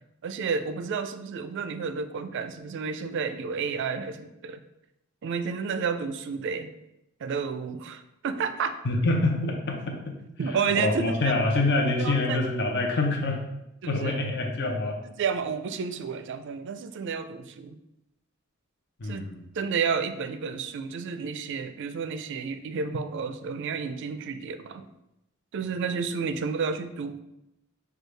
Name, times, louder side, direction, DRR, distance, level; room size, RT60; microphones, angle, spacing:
voice 1, 0.2-4.6 5.2-6.7 7.2-8.8 10.4-11.4 12.0-12.4 13.8-14.2 15.2-17.8 19.0-19.3 19.6-24.9 25.5-27.2, right 5 dB, 60° right, 10 dB, 0.4 m, -31 dB
voice 2, 8.8-10.2 10.7-13.4 13.9-15.0 19.0-19.5, left 2 dB, 55° left, 2 dB, 0.7 m, -26 dB
6.3 x 2.3 x 3.2 m, 0.87 s
head